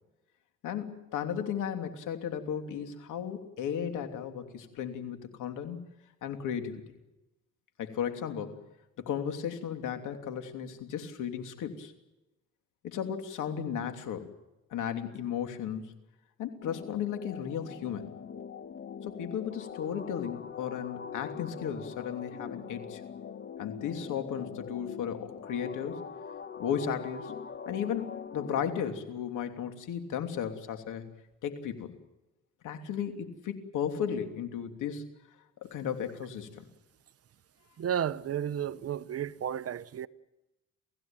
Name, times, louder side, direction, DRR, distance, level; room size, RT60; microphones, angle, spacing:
voice 1, 0.6-5.8 6.2-6.8 7.8-8.6 9.0-11.9 12.8-14.3 14.7-15.9 16.4-18.1 19.0-23.0 23.6-26.0 26.6-27.4 27.7-31.0 31.4-31.9 32.6-35.1 35.6-36.6, left 8 dB, 85° left, 3.1 m, -35 dB
sound 1, 16.6-28.8, left 7 dB, 40° left, 1.5 m, -43 dB
voice 2, 37.8-40.1, right 9 dB, 50° right, 1.0 m, -32 dB
29.5 x 16.0 x 9.0 m
cardioid pair, 90°, 30 cm